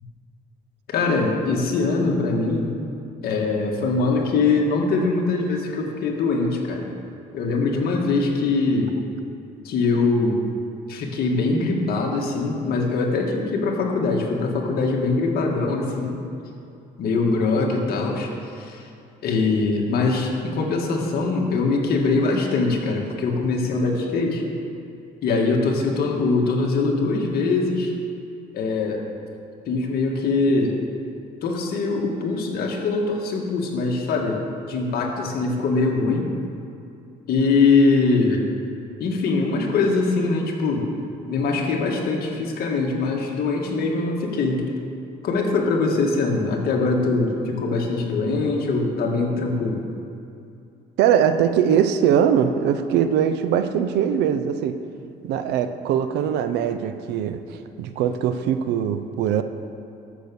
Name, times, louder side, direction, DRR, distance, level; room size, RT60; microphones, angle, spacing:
voice 1, 0.9-2.7 3.2-6.9 7.3-8.9 9.6-10.5 10.9-16.2 17.0-18.9 19.2-24.4 25.2-27.9 28.5-29.1 29.7-30.8 31.4-34.4 34.7-36.3 37.3-38.4 39.0-40.9 41.3-44.6 45.2-49.8, left 3 dB, 65° left, 0 dB, 1.9 m, -22 dB
voice 2, 51.0-54.8 55.2-59.4, right 8 dB, 85° right, 10 dB, 0.7 m, -21 dB
13.5 x 6.2 x 7.1 m, 2.6 s
cardioid pair, 110°, 17 cm